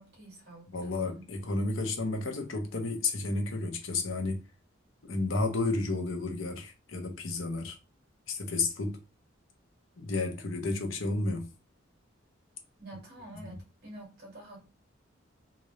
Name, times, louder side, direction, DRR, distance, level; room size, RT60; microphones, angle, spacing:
voice 1, 0.0-1.3 12.8-14.6, right 1 dB, 50° right, 2.1 m, -48 dB
voice 2, 0.7-4.4 5.0-7.8 8.3-9.0 10.0-11.5 13.4-13.6, left 3 dB, 80° left, 0.9 m, -32 dB
3.9 x 2.6 x 3.2 m
head